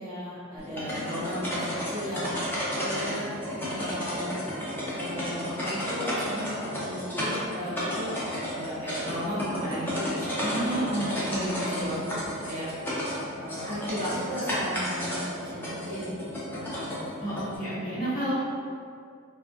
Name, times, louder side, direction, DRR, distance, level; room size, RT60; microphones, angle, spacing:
voice 1, 0.0-2.3 2.8-4.4 4.8-11.0 11.3-12.7 13.4-16.9, equal, 45° right, -9 dB, 0.7 m, -36 dB
sound 1, 0.6-17.6, equal, 10° left, 0.5 m, -32 dB
voice 2, 10.4-12.0 17.2-18.4, right 1 dB, 45° left, -10 dB, 0.9 m, -30 dB
2.4 x 2.1 x 2.5 m, 2.2 s
head